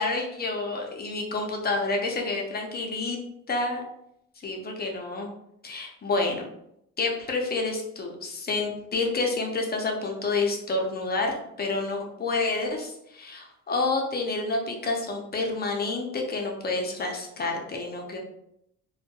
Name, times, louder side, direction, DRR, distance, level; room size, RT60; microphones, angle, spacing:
voice 1, 0.0-3.2 3.5-3.8 4.4-5.3 5.6-6.5 7.0-18.2, left 3 dB, 30° left, 1 dB, 0.6 m, -29 dB
2.2 x 2.1 x 2.8 m, 0.78 s
cardioid pair, 90°, 30 cm